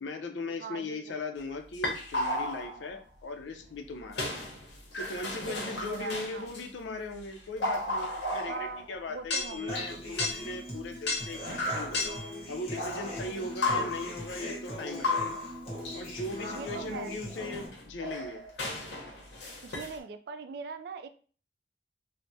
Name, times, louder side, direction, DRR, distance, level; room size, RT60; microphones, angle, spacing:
voice 1, 0.0-4.3 5.0-12.0 12.5-15.4 15.9-18.4, left 2 dB, 90° left, 6 dB, 0.5 m, -39 dB
voice 2, 0.6-1.0 5.4-6.5 8.5-9.8 13.2-13.5 16.5-17.2 19.5-21.1, right 5 dB, 60° right, 9 dB, 0.3 m, -41 dB
sound 1, 1.7-2.9 4.1-6.6 7.2-9.0 9.3-10.6 11.1-12.3 12.8-14.5 14.8-16.4 16.7-16.8 17.4-20.0, left 2 dB, 70° left, 0.9 m, -34 dB
Human voice / Acoustic guitar, 9.7-17.7, equal, 35° left, 0.8 m, -40 dB
3.3 x 2.0 x 2.6 m, 0.40 s
head